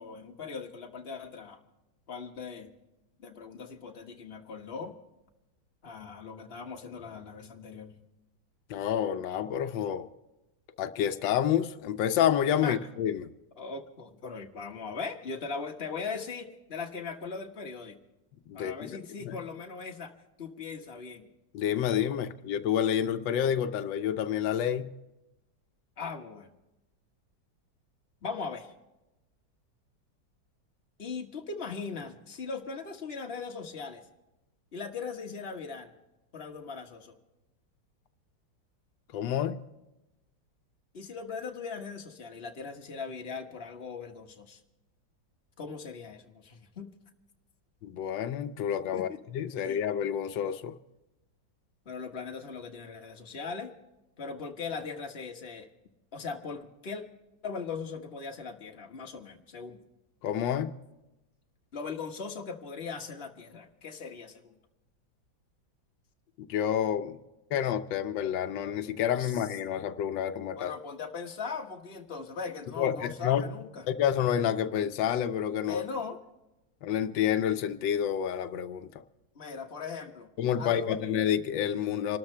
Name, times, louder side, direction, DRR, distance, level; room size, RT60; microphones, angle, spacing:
voice 1, 0.0-1.6 2.1-2.7 3.2-4.9 5.8-7.9 12.6-12.8 13.6-18.0 18.5-20.1 20.4-21.3 26.0-26.5 28.2-28.7 31.0-34.1 34.7-35.9 36.3-37.1 40.9-44.6 45.6-46.9 48.9-49.2 49.6-49.8 51.8-53.7 54.2-55.7 56.1-57.0 57.4-59.8 61.7-64.6 69.2-69.4 70.6-73.8 75.7-76.2 79.3-80.3 80.6-81.0, left 5 dB, 35° left, 2 dB, 1.5 m, -39 dB
voice 2, 8.7-10.1 10.8-13.3 18.5-19.4 21.5-24.9 39.1-39.6 47.8-50.8 60.2-60.8 66.4-67.2 67.5-70.7 72.8-73.5 73.9-75.8 76.8-78.9 80.4-82.2, left 9 dB, 90° left, 9 dB, 1.4 m, -29 dB
27.0 x 13.0 x 3.3 m, 0.97 s
omnidirectional pair, 1.9 m